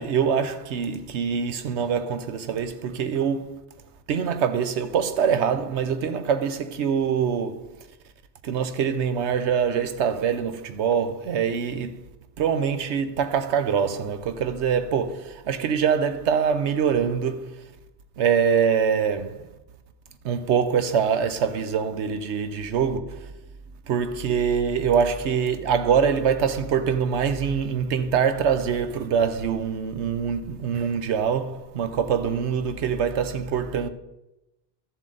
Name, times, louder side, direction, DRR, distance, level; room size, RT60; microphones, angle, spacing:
voice 1, 0.0-3.6 4.1-7.7 8.4-12.0 12.4-17.6 18.2-19.5 20.2-23.3 23.9-33.9, right 7 dB, 85° right, 1.0 m, -24 dB
12.5 x 7.4 x 3.9 m
omnidirectional pair, 1.1 m